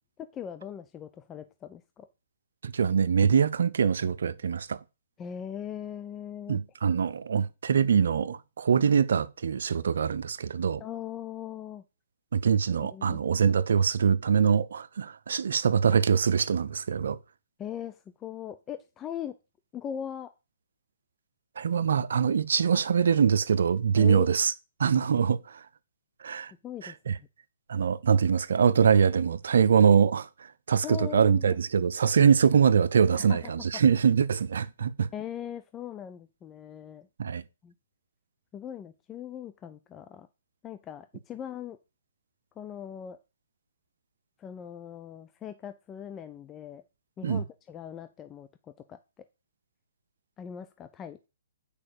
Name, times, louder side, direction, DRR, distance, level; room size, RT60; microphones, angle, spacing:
voice 1, 0.2-2.1 5.2-6.6 10.8-11.8 12.8-13.2 17.6-19.4 19.7-20.3 24.0-24.3 26.6-27.0 30.8-31.6 33.1-33.5 35.1-37.1 37.6-37.7 38.5-40.3 40.6-41.8 42.6-43.2 44.4-46.8 47.2-48.5 48.9-49.3 50.4-51.2, left 9 dB, 20° left, 0.6 m, -40 dB
voice 2, 2.6-4.8 6.5-10.8 12.3-17.2 21.6-24.5 24.8-25.6 26.2-26.5 26.8-27.2 27.7-30.3 30.7-35.1 37.2-37.4 47.2-47.4, right 7 dB, 70° right, 0.8 m, -23 dB
8.6 x 5.0 x 7.0 m
hypercardioid pair, 135°, 0 cm